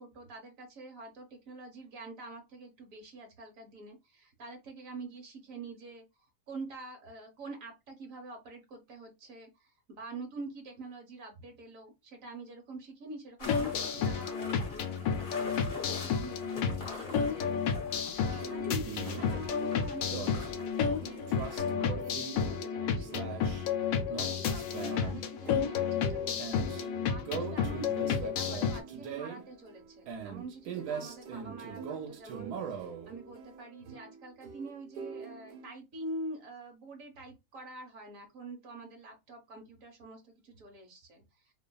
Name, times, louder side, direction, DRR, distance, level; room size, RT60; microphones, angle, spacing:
voice 1, 0.0-6.0 6.5-41.5, right 2 dB, 60° right, 4 dB, 1.3 m, -46 dB
sound 1, 13.4-28.8, left 6 dB, 75° left, 1.0 m, -32 dB
sound 2, 13.4-21.6, left 3 dB, 45° left, 0.8 m, -46 dB
sound 3, 18.3-35.7, right 6 dB, 90° right, 1.2 m, -42 dB
3.1 x 2.2 x 2.2 m, 0.22 s
omnidirectional pair, 1.7 m